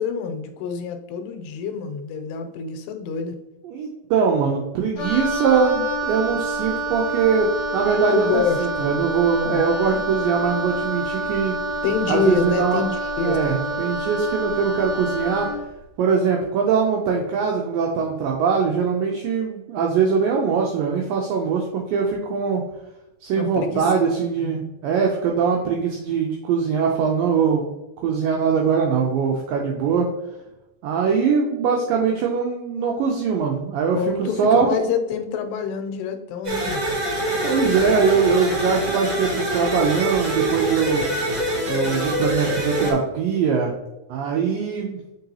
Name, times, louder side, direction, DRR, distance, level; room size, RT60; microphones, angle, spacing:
voice 1, 0.0-3.4 8.1-8.9 9.4-9.7 11.8-14.1 23.3-23.9 24.4-24.5 33.9-36.8, left 6 dB, 85° left, 7 dB, 2.8 m, -26 dB
voice 2, 3.6-11.6 12.1-12.8 13.2-15.5 16.0-22.6 23.2-27.7 28.0-30.1 30.8-34.8 37.4-41.1 41.7-43.7 44.1-45.0, right 5 dB, 90° right, 0 dB, 2.0 m, -22 dB
Wind instrument woodwind instrument, 5.0-15.6, right 2 dB, 55° left, 1.5 m, -27 dB
sound 1, 36.4-42.9, right 1 dB, 60° right, 0.9 m, -25 dB
7.8 x 4.6 x 2.8 m, 0.97 s
omnidirectional pair, 4.7 m